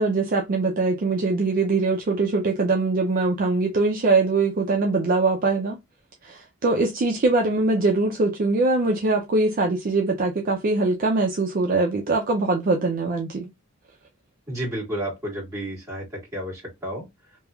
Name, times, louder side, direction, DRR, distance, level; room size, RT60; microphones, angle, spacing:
voice 1, 0.0-5.8 6.2-13.5, right 3 dB, 45° right, 0.4 m, -22 dB
voice 2, 14.5-16.1 16.3-17.0, right 1 dB, 15° right, 1.7 m, -31 dB
3.1 x 2.3 x 2.2 m
head